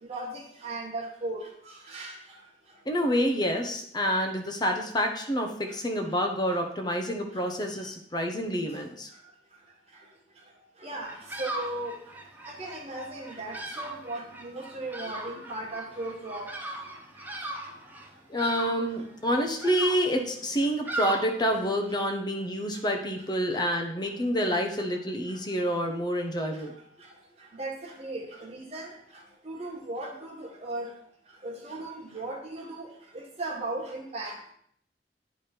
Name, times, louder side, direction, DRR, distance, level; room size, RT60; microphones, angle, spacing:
voice 1, 0.0-1.5 1.9-2.1 10.8-12.0 12.5-16.5 27.6-28.9 29.5-30.9 31.4-32.9 33.1-34.4, right 2 dB, 35° right, -1 dB, 1.6 m, -37 dB
voice 2, 2.9-9.1 18.3-26.7, equal, 25° left, 3 dB, 0.8 m, -28 dB
Bird vocalization bird call bird song, 11.0-21.9, right 2 dB, 10° right, 0.7 m, -39 dB
9.3 x 3.4 x 4.4 m, 0.64 s
head